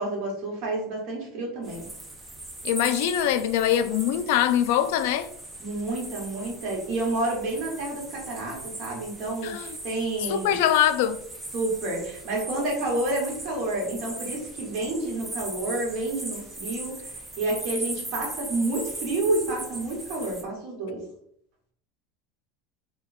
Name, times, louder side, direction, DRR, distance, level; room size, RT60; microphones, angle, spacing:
voice 1, 0.0-1.8 5.6-10.6 11.5-16.9 17.4-21.0, right 2 dB, 40° right, 1.6 m, -29 dB
sound 1, 1.6-20.4, right 2 dB, 10° right, 0.6 m, -39 dB
voice 2, 2.6-5.3 9.4-9.8 10.3-11.2, left 10 dB, 70° left, 0.3 m, -23 dB
3.6 x 2.3 x 4.2 m
cardioid pair, 170°, 0 cm